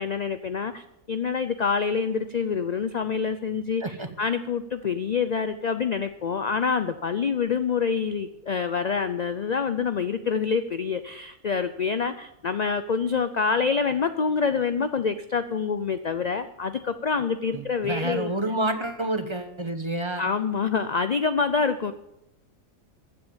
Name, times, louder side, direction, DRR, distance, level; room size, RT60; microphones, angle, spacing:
voice 1, 0.0-18.4 20.2-21.9, left 5 dB, 50° left, 10 dB, 0.5 m, -26 dB
voice 2, 17.5-20.2, right 2 dB, 25° right, 7 dB, 0.9 m, -29 dB
15.0 x 7.8 x 7.2 m, 0.85 s
omnidirectional pair, 1.4 m